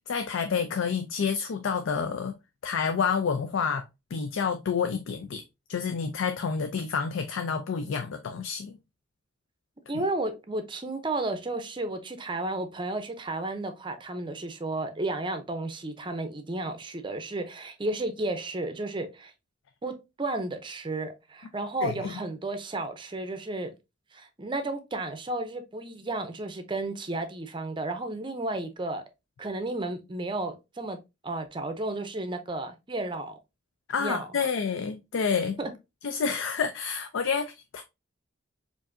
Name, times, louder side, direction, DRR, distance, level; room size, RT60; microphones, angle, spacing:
voice 1, 0.1-2.4 2.6-3.8 4.1-5.4 5.7-8.8 9.9-10.0 21.8-22.1 33.9-35.6 36.0-37.8, left 6 dB, 90° left, 0.4 m, -29 dB
voice 2, 9.9-19.3 19.8-23.7 24.1-29.0 29.4-33.4 34.0-34.3 35.6-35.7, right 2 dB, 25° right, 0.5 m, -33 dB
4.7 x 2.6 x 2.5 m
head